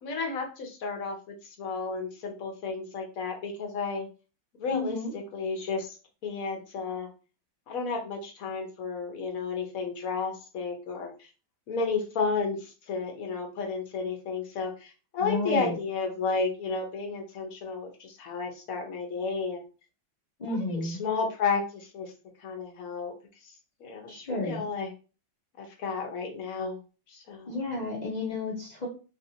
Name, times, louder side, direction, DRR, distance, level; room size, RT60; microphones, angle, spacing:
voice 1, 0.0-4.1 4.6-6.0 6.2-7.1 7.7-11.3 11.7-19.6 20.5-22.1 22.4-23.1 23.4-23.5 23.8-24.9 25.6-26.8 27.1-27.6, left 4 dB, 60° left, 1 dB, 1.1 m, -32 dB
voice 2, 4.7-5.1 15.2-15.8 20.4-21.0 24.1-24.6 27.5-28.9, left 2 dB, 40° left, -5 dB, 0.6 m, -31 dB
3.3 x 2.5 x 2.7 m, 0.34 s
omnidirectional pair, 2.0 m